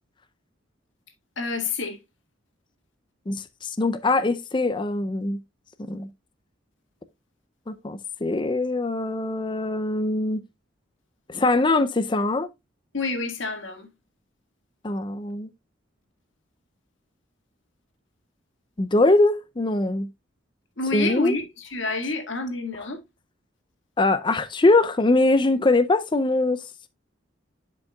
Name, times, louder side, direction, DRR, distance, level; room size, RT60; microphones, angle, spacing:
voice 1, 1.4-2.0 12.9-13.9 20.8-23.0, left 3 dB, 70° left, 1.8 m, -28 dB
voice 2, 3.3-5.4 5.8-6.1 7.7-10.4 11.3-12.5 14.8-15.5 18.8-20.1 20.9-21.3 24.0-26.6, left 2 dB, 25° left, 0.5 m, -22 dB
11.0 x 5.3 x 2.3 m
head